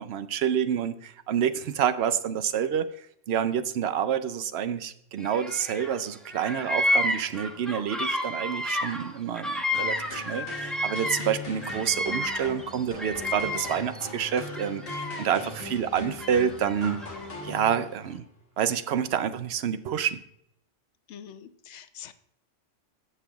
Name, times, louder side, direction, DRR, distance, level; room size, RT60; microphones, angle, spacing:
voice 1, 0.0-2.9 3.3-17.0 17.4-18.2 18.6-20.2, right 8 dB, 65° right, 11 dB, 0.8 m, -28 dB
Bird vocalization bird call bird song, 5.2-6.0 6.3-11.3 11.6-14.0 14.5-15.5 16.2-17.3, left 1 dB, ahead, 0.7 m, -31 dB
sound 1, 9.7-18.1, left 2 dB, 50° left, 1.7 m, -40 dB
voice 2, 21.1-22.1, left 9 dB, 75° left, 12 dB, 0.9 m, -44 dB
15.5 x 5.6 x 2.3 m, 0.73 s
omnidirectional pair, 1.3 m